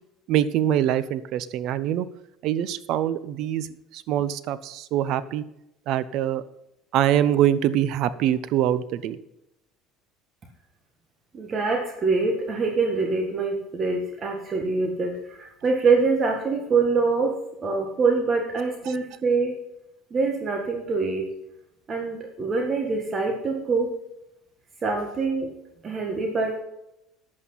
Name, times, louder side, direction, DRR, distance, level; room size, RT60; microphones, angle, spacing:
voice 1, 0.3-2.1 2.4-3.7 3.9-5.4 5.9-6.4 6.9-9.2, right 11 dB, 60° right, 15 dB, 0.8 m, -24 dB
voice 2, 11.3-19.6 20.1-21.3 21.9-24.0 24.8-25.5 25.8-26.6, right 4 dB, 30° right, 2 dB, 1.6 m, -24 dB
10.5 x 8.6 x 5.6 m, 0.86 s
cardioid pair, 120°, 0 cm